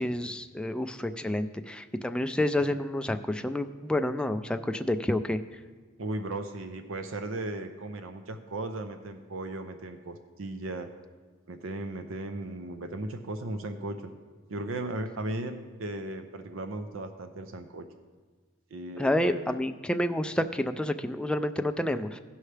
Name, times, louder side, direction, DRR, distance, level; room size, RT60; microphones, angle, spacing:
voice 1, 0.0-5.4 19.0-22.2, left 1 dB, 5° left, 8 dB, 0.3 m, -29 dB
voice 2, 6.0-10.9 11.5-14.1 14.5-17.9 18.7-19.6, right 2 dB, 85° right, 7 dB, 0.6 m, -36 dB
16.5 x 5.6 x 3.3 m, 1.4 s
head